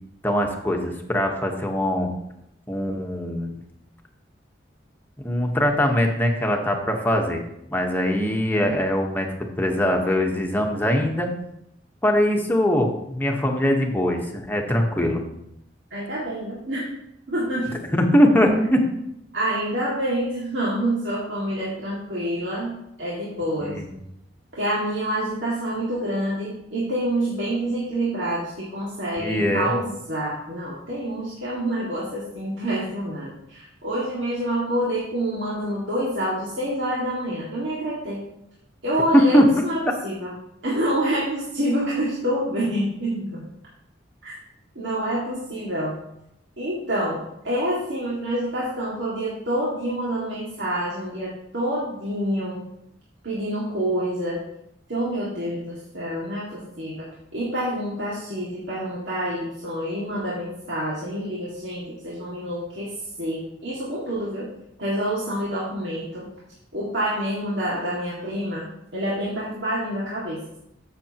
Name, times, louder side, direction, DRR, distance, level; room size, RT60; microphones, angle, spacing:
voice 1, 0.2-2.1 2.7-3.5 5.2-7.4 7.7-9.3 9.6-11.3 12.0-15.2 17.9-18.8 23.6-23.8 29.2-29.7 39.1-39.4, equal, 10° left, 2 dB, 1.2 m, -21 dB
voice 2, 15.9-16.9 17.3-17.7 19.3-23.8 24.6-38.2 38.8-40.3 40.6-43.4 44.2-44.3 44.8-46.0 46.6-52.6 53.2-54.4 54.9-57.1 57.3-62.9 63.2-64.5 64.8-66.3 66.7-68.6 68.9-70.6, right 1 dB, 75° right, -7 dB, 2.2 m, -27 dB
14.0 x 6.6 x 3.0 m, 0.80 s
head